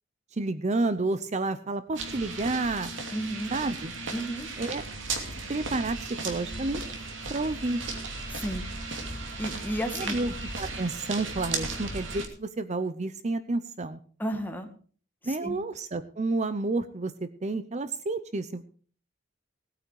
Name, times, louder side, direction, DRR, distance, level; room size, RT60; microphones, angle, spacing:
voice 1, 0.3-2.9 3.5-3.9 4.6-4.8 5.5-6.8 7.3-7.8 9.9-14.0 15.3-18.6, right 2 dB, 40° right, 12 dB, 0.7 m, -30 dB
sound 1, 2.0-12.3, right 3 dB, 80° right, 2.7 m, -36 dB
voice 2, 3.1-3.5 4.1-4.5 8.3-8.6 9.4-10.2 14.2-14.7 15.2-15.6, equal, 10° left, 4 dB, 2.0 m, -32 dB
18.5 x 9.1 x 4.8 m, 0.43 s
head